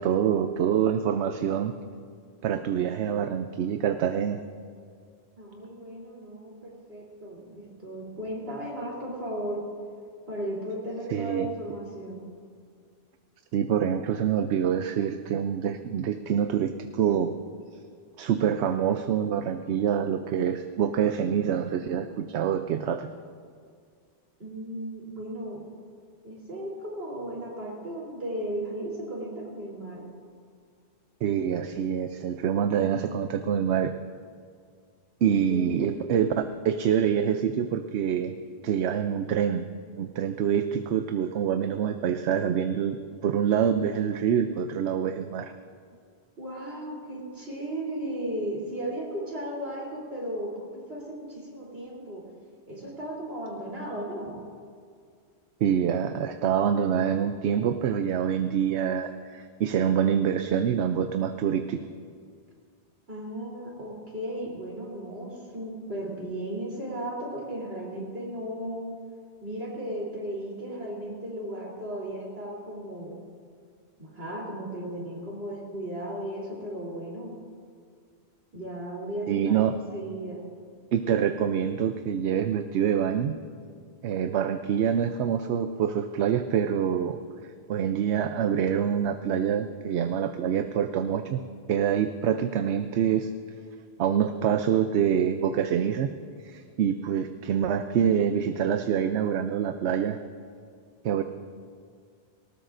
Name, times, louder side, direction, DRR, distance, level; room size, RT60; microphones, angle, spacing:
voice 1, 0.0-1.7 2.4-4.4 11.1-11.5 13.5-17.3 18.2-23.1 31.2-33.9 35.2-38.3 38.6-39.7 40.0-45.5 55.6-61.8 79.3-79.7 80.9-83.3 84.0-87.2 87.7-91.4 91.7-93.3 94.0-96.1 96.4-100.2 101.0-101.2, right 8 dB, 85° right, 8 dB, 0.9 m, -26 dB
voice 2, 5.4-9.7 10.3-12.2 24.4-25.6 26.2-30.1 32.7-33.6 35.2-35.8 46.4-52.2 52.7-54.4 63.1-68.9 69.4-73.2 74.0-77.4 78.5-79.6 79.9-80.4, right 1 dB, 65° right, -4 dB, 3.8 m, -35 dB
19.0 x 18.5 x 2.6 m, 2.1 s
omnidirectional pair, 1.1 m